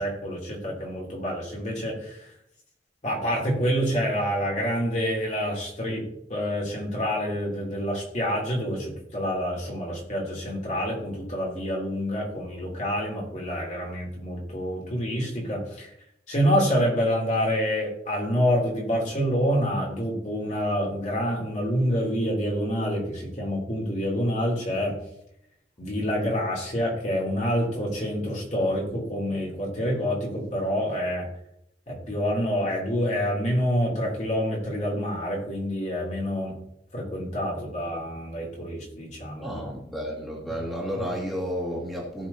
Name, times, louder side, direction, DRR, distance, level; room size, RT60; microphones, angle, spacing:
voice 1, 0.0-2.2 3.0-15.9 16.3-25.0 25.8-31.3 31.9-36.5 36.9-39.6 40.9-41.0, equal, 45° left, -3 dB, 3.2 m, -27 dB
voice 2, 39.4-42.3, equal, ahead, -5 dB, 2.3 m, -32 dB
17.5 x 6.2 x 2.9 m, 0.76 s
head